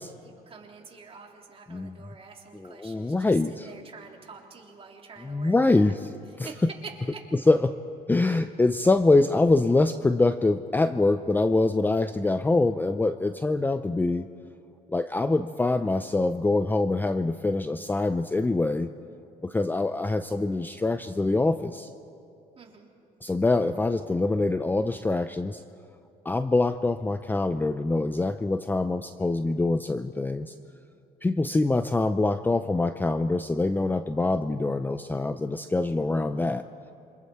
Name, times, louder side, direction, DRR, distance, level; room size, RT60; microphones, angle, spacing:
voice 1, 0.2-6.0 6.4-7.3 22.6-22.9, right 4 dB, 35° right, 0 dB, 3.4 m, -46 dB
voice 2, 2.6-3.7 5.2-6.1 6.4-6.5 7.5-7.8 8.1-14.3 14.9-18.9 19.4-21.9 23.2-25.6 26.2-30.5 31.2-36.6, left 2 dB, 10° left, 10 dB, 0.6 m, -24 dB
27.5 x 25.5 x 4.5 m, 2.7 s
cardioid pair, 110°, 17 cm